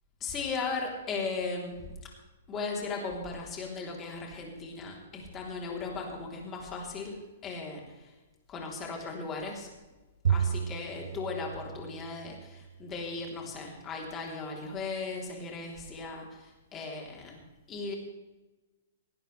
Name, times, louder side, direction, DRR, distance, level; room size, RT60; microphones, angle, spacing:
voice 1, 0.2-1.9 2.5-7.2 7.4-8.1 8.5-9.7 10.3-17.4 17.7-17.9, left 4 dB, 15° left, 0 dB, 3.4 m, -37 dB
Bowed string instrument, 10.2-12.8, right 8 dB, 70° right, 0.3 m, -32 dB
18.5 x 16.0 x 3.3 m, 1.1 s
hypercardioid pair, 170°, 0 cm